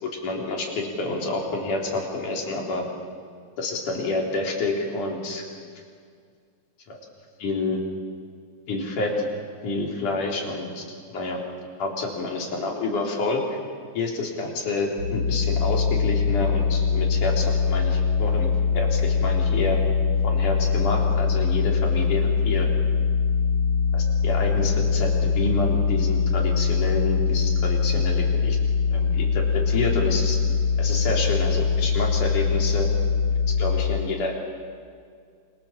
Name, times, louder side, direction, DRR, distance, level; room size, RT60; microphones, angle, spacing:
voice 1, 0.0-2.9 3.6-5.4 6.9-7.0 7.4-7.8 8.7-9.1 9.6-11.4 11.8-13.4 14.0-19.8 20.2-22.7 23.9-28.6 28.9-30.4 30.8-32.9 33.6-34.4, left 2 dB, 90° left, 0 dB, 5.4 m, -28 dB
sound 1, 15.0-33.8, left 5 dB, 50° right, 6.1 m, -22 dB
28.5 x 26.0 x 7.6 m, 2.1 s
omnidirectional pair, 3.5 m